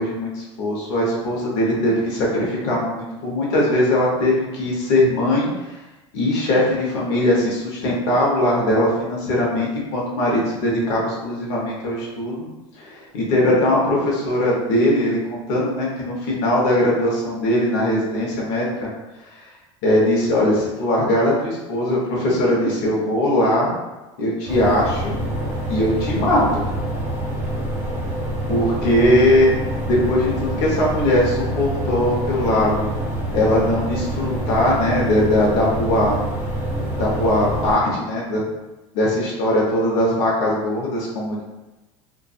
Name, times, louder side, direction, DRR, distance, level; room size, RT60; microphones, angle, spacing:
voice 1, 0.0-5.8 6.1-12.4 12.7-18.9 19.3-19.5 19.8-23.7 24.2-25.1 25.7-26.6 28.5-29.6 29.8-32.9 33.3-36.2 37.0-38.4 38.9-41.4, left 1 dB, 75° left, -4 dB, 0.9 m, -20 dB
sound 1, 24.5-37.7, right 1 dB, 15° right, 1.3 m, -26 dB
2.5 x 2.5 x 2.3 m, 1.1 s
supercardioid pair, 115°, 15 cm